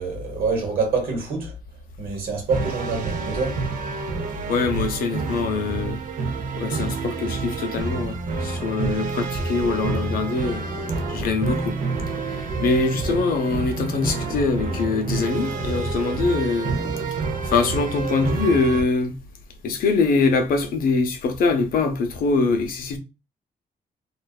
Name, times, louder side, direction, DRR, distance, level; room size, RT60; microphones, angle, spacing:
voice 1, 0.0-1.5 2.0-3.6 13.1-13.2, right 4 dB, 80° right, 1.1 m, -26 dB
sound 1, 2.5-18.8, right 4 dB, 60° right, 0.5 m, -28 dB
voice 2, 4.5-6.0 6.6-10.6 11.1-11.8 12.3-16.8 17.4-19.2 19.6-23.0, left 4 dB, 75° left, 0.6 m, -23 dB
Traffic noise roadway noise / Engine, 9.8-17.1, left 1 dB, 10° left, 0.6 m, -41 dB
2.5 x 2.2 x 2.3 m
cardioid pair, 120°, 15 cm